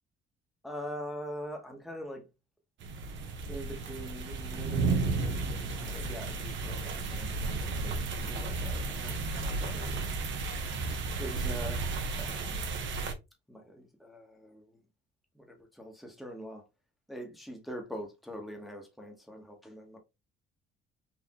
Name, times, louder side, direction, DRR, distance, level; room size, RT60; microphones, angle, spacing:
voice 1, 0.6-2.3 3.5-10.1 11.2-12.7 13.5-14.7 15.3-16.6 17.1-20.0, equal, ahead, 1.2 m, -43 dB
sound 1, 2.8-13.1, right 3 dB, 65° right, 1.0 m, -33 dB
4.4 x 2.5 x 2.9 m
cardioid pair, 80°, 21 cm